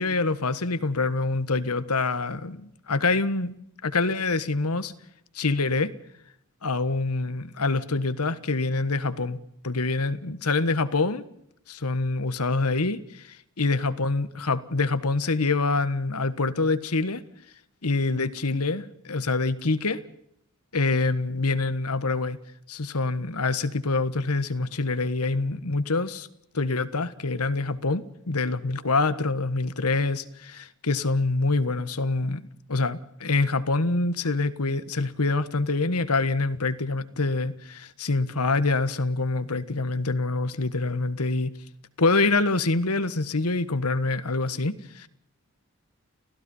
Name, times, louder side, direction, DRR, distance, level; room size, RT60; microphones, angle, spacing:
voice 1, 0.0-3.5 3.8-4.9 5.3-5.9 6.6-11.2 11.7-17.2 17.8-20.0 20.7-22.4 22.7-26.3 26.5-41.5 42.0-45.1, left 3 dB, 85° left, 1.5 m, -26 dB
30.0 x 16.0 x 5.5 m
head